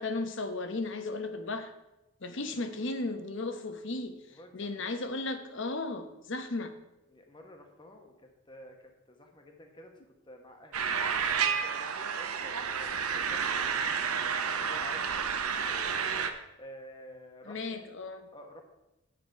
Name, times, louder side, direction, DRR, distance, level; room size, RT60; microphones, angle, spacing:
voice 1, 0.0-1.7 2.2-4.1 4.5-6.7 17.5-18.2, left 2 dB, 55° left, 8 dB, 0.9 m, -35 dB
voice 2, 2.4-2.8 4.3-4.9 7.1-10.0 10.3-10.9 11.3-13.9 14.5-16.1 16.6-17.9 18.3-18.6, left 1 dB, 20° left, 3 dB, 1.2 m, -51 dB
sound 1, 10.7-16.3, right 6 dB, 85° right, 0.8 m, -30 dB
8.5 x 7.8 x 4.7 m, 0.95 s
head